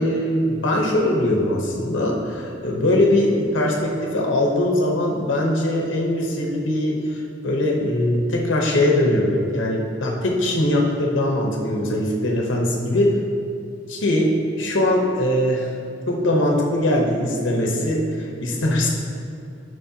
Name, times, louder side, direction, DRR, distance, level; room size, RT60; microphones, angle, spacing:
voice 1, 0.0-13.2 13.9-14.3 14.6-15.7 16.1-18.9, left 1 dB, 85° left, -1 dB, 1.0 m, -21 dB
11.5 x 5.2 x 2.8 m, 2.5 s
head